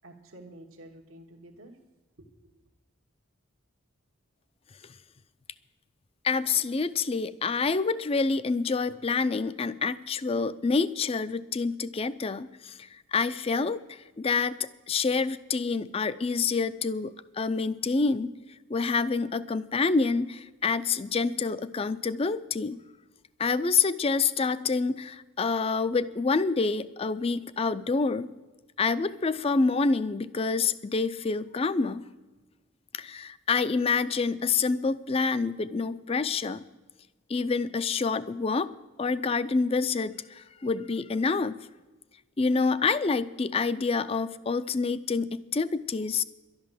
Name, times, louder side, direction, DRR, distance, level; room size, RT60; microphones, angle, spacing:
voice 1, 0.0-1.8 2.2-2.6, right 1 dB, 80° right, 1 dB, 1.3 m, -50 dB
voice 2, 6.2-18.3 18.7-22.8 23.4-28.3 28.8-32.0 32.9-36.6 37.3-38.7 39.0-41.6 42.4-46.2, left 4 dB, 30° left, 15 dB, 0.4 m, -27 dB
11.5 x 10.5 x 7.4 m, 1.2 s
head